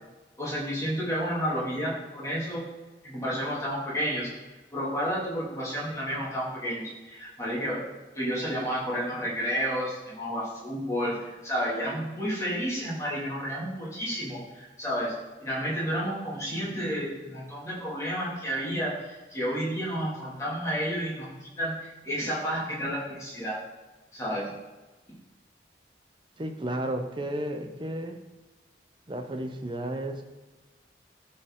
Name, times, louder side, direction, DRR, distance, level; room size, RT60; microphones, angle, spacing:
voice 1, 0.4-2.7 3.0-4.3 4.7-23.6 24.1-24.5, equal, 15° left, -6 dB, 2.3 m, -31 dB
voice 2, 26.4-28.2 29.1-30.2, right 1 dB, 25° right, 6 dB, 0.7 m, -33 dB
12.5 x 4.3 x 3.7 m, 1.2 s
head